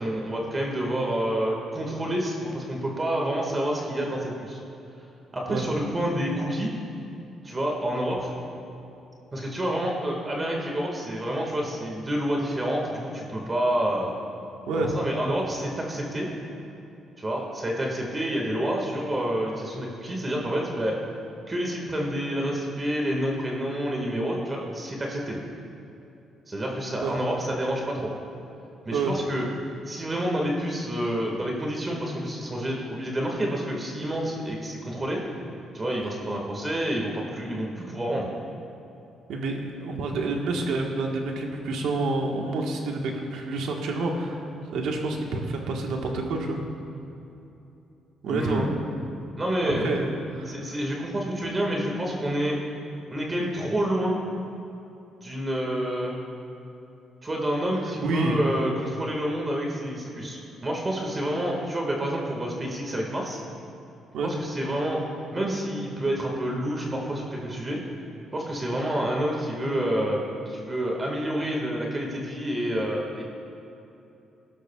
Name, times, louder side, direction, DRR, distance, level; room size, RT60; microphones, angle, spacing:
voice 1, 0.0-4.6 5.3-6.8 7.4-8.3 9.3-14.1 14.7-16.3 17.2-21.0 21.5-25.4 26.5-28.1 28.9-29.5 29.9-35.2 35.7-38.3 48.2-48.8 49.4-49.9 50.5-52.6 53.1-54.2 55.2-56.2 57.2-63.4 64.2-65.0 65.3-67.8 68.3-73.2, right 1 dB, 25° right, -1 dB, 1.8 m, -28 dB
voice 2, 14.7-15.0 27.0-27.1 28.9-29.1 39.3-44.4 44.7-46.6 48.2-48.7 49.6-50.1 50.3-50.6 58.0-58.4 64.1-64.3, right 2 dB, 85° right, 1 dB, 1.4 m, -28 dB
17.5 x 12.0 x 2.4 m, 2.9 s
cardioid pair, 90°, 0 cm